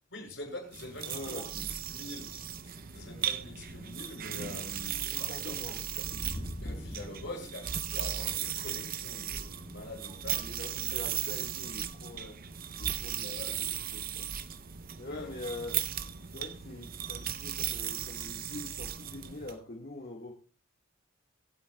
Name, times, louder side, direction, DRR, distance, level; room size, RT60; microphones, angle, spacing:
voice 1, 0.1-6.0 6.6-11.0 13.1-13.6 15.1-15.3, left 1 dB, 70° left, 6.2 m, -45 dB
sound 1, 0.7-19.6, right 9 dB, 50° right, 0.7 m, -37 dB
voice 2, 1.0-1.4 5.1-5.8 6.1-7.0 10.4-12.4 12.8-13.7 13.9-14.3 15.0-15.8 16.3-20.3, left 2 dB, 50° left, 1.8 m, -43 dB
23.5 x 8.3 x 2.3 m
head